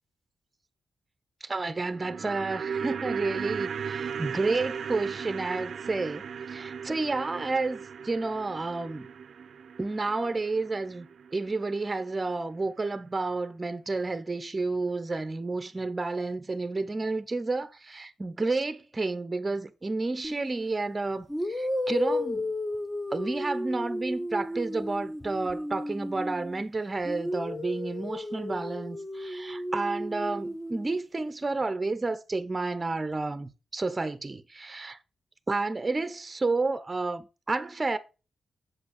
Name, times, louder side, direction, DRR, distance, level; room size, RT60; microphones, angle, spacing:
voice 1, 1.4-6.2 6.5-9.1 9.8-11.1 11.3-22.5 23.1-35.0 35.5-38.0, right 3 dB, 25° right, 0.8 m, -31 dB
sound 1, 1.7-12.0 12.3-12.4, right 7 dB, 65° right, 0.6 m, -37 dB
sound 2, 20.2-20.5 21.3-26.6 27.0-31.0, left 1 dB, 10° left, 1.2 m, -33 dB
7.5 x 5.3 x 6.5 m
cardioid pair, 100°, 0 cm